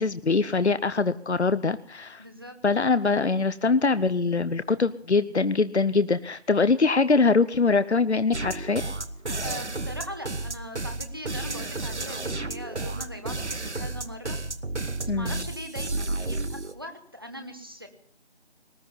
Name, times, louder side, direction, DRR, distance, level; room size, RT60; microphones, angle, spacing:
voice 1, 0.0-2.2 2.6-8.8 15.1-15.4, left 4 dB, 75° left, 14 dB, 0.8 m, -23 dB
voice 2, 2.2-2.5 9.4-14.4 15.0-17.9, equal, 20° right, 6 dB, 1.2 m, -40 dB
sound 1, 8.3-16.7, right 2 dB, 80° right, 1.4 m, -32 dB
19.5 x 12.0 x 5.5 m, 0.62 s
figure-of-eight pair, 170°, 34 cm